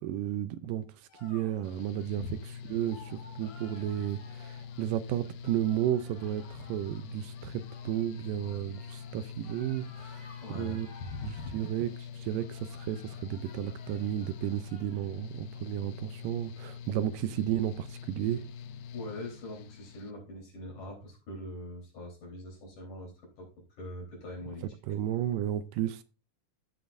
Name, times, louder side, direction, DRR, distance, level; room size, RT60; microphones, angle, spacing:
voice 1, 0.0-0.9 1.2-2.2 2.7-10.3 10.6-10.9 11.2-18.4 24.9-26.0, right 12 dB, 80° right, 2.2 m, -33 dB
sound 1, 1.1-15.2, left 2 dB, 35° left, 3.5 m, -56 dB
Mechanical fan, 1.6-20.1, left 7 dB, 85° left, 2.5 m, -44 dB
voice 2, 10.4-11.5 18.9-23.5 23.8-24.7, left 1 dB, 65° left, 5.3 m, -42 dB
15.5 x 6.1 x 2.6 m
omnidirectional pair, 4.0 m